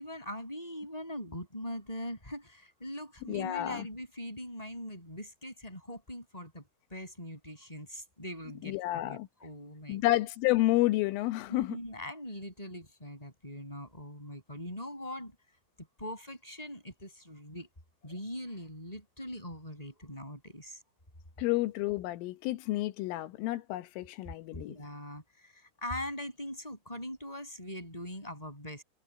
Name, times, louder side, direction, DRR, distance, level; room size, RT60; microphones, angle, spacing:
voice 1, 0.0-10.0 11.5-15.4 16.0-17.7 18.0-20.8 24.5-28.8, left 1 dB, 5° left, 7.5 m, -42 dB
voice 2, 3.3-3.9 8.6-9.3 9.9-11.8 21.4-24.8, left 17 dB, 85° left, 3.7 m, -30 dB
omnidirectional pair, 5.6 m